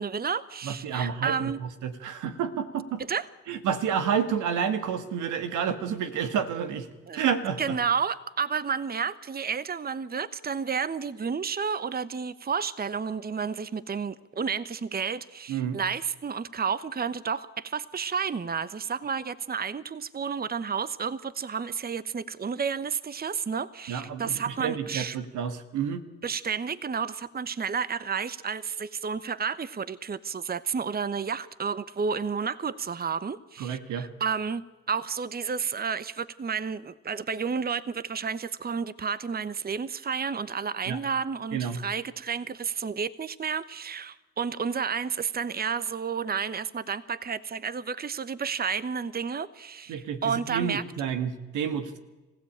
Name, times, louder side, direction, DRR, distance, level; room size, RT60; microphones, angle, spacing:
voice 1, 0.0-1.6 3.0-3.3 7.1-7.2 7.6-25.2 26.2-34.6 34.9-50.8, right 6 dB, 30° right, 16 dB, 1.0 m, -31 dB
voice 2, 0.6-3.0 3.5-6.9 7.1-7.8 15.5-15.8 23.9-26.0 33.6-34.1 40.9-41.0 41.5-41.8 49.9-52.0, right 7 dB, 80° right, 8 dB, 1.8 m, -30 dB
25.5 x 15.5 x 8.7 m, 1.2 s
supercardioid pair, 50°, 30 cm